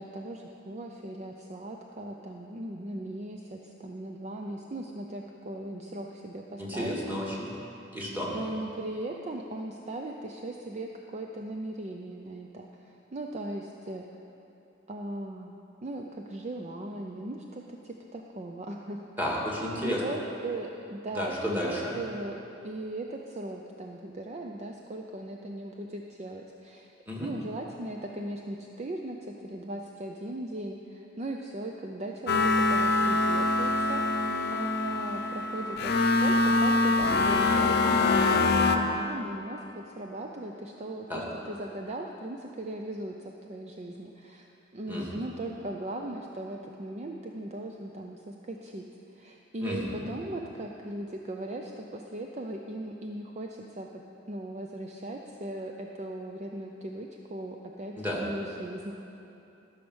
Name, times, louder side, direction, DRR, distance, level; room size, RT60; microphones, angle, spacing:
voice 1, 0.0-7.3 8.3-14.1 14.9-15.6 15.8-19.0 19.8-22.4 22.6-26.9 27.2-44.5 44.7-48.8 49.1-54.0 54.3-58.9, right 1 dB, 35° right, 1 dB, 0.5 m, -38 dB
voice 2, 6.6-7.5 7.9-8.3 19.2-20.0 21.2-21.9 27.1-27.3 41.1-41.2 44.9-45.1 49.6-50.1 58.0-58.2, equal, 10° right, -4 dB, 1.9 m, -32 dB
sound 1, 32.3-38.8, left 3 dB, 55° left, 0.6 m, -24 dB
13.5 x 6.3 x 6.3 m, 2.8 s
head